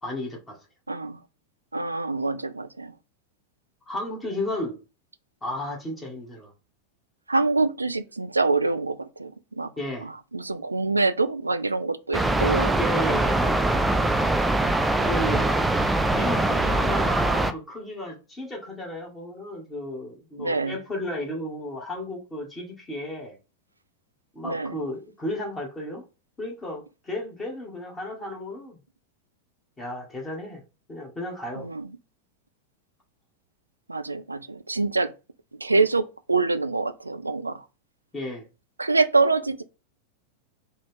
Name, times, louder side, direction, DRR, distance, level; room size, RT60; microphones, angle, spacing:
voice 1, 0.0-0.6 3.9-4.8 5.4-6.5 9.8-10.1 12.8-13.8 15.0-15.6 16.1-23.4 24.3-26.1 26.4-28.8 29.8-30.6 30.9-31.7 38.1-38.5, left 1 dB, 15° left, 1.5 m, -33 dB
voice 2, 0.9-1.2 1.7-2.9 7.3-9.7 10.0-12.8 20.4-20.8 24.4-24.8 31.6-31.9 33.9-35.1 35.5-37.7 38.8-39.6, right 3 dB, 80° right, 0.3 m, -25 dB
sound 1, 12.1-17.5, right 2 dB, 10° right, 0.4 m, -23 dB
4.0 x 2.4 x 3.7 m
figure-of-eight pair, 90°, 0 cm